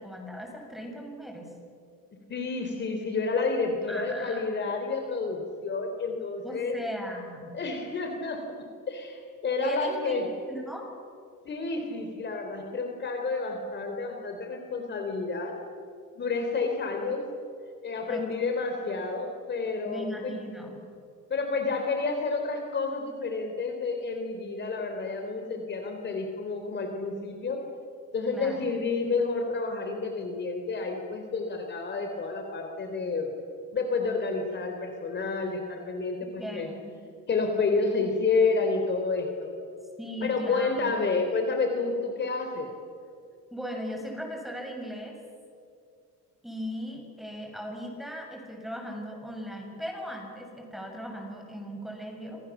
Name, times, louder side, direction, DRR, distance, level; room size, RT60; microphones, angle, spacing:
voice 1, 0.0-1.5 3.9-4.5 6.4-7.5 9.6-10.9 18.1-18.2 19.8-20.8 28.3-28.6 36.4-36.9 40.0-40.9 43.5-45.2 46.4-52.4, equal, ahead, 1 dB, 6.7 m, -38 dB
voice 2, 2.3-6.7 7.5-8.5 8.9-10.3 11.4-15.5 16.2-17.3 17.8-20.4 21.3-27.6 28.1-33.3 33.7-36.7 37.3-39.5 40.2-42.7, left 4 dB, 35° left, 4 dB, 3.4 m, -30 dB
29.0 x 26.5 x 7.2 m, 2.5 s
cardioid pair, 150°, 32 cm